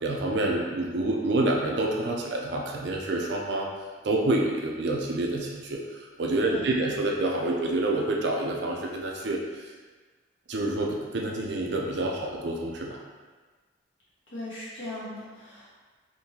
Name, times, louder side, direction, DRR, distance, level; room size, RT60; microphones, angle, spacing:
voice 1, 0.0-3.7 4.0-9.7 10.5-13.0, right 2 dB, 60° right, -1 dB, 0.5 m, -28 dB
voice 2, 14.3-15.7, left 1 dB, 75° left, -9 dB, 1.5 m, -39 dB
3.7 x 2.7 x 2.8 m, 1.4 s
head